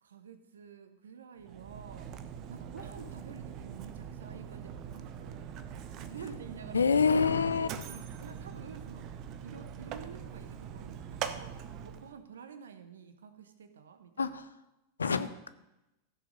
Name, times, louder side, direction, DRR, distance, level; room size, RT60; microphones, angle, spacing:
voice 1, 0.0-2.1 2.5-6.8 7.9-9.1 9.4-14.3 15.0-15.3, right 6 dB, 65° right, 9 dB, 1.1 m, -49 dB
Mechanisms, 1.4-12.1, right 8 dB, 40° right, 0.8 m, -43 dB
Explosion, 2.8-4.4, left 5 dB, 15° left, 2.3 m, -56 dB
voice 2, 6.7-7.8 14.2-14.5 15.0-15.5, left 5 dB, 75° left, 13 dB, 0.6 m, -27 dB
15.0 x 6.6 x 5.3 m, 0.94 s
figure-of-eight pair, 90°, 0 cm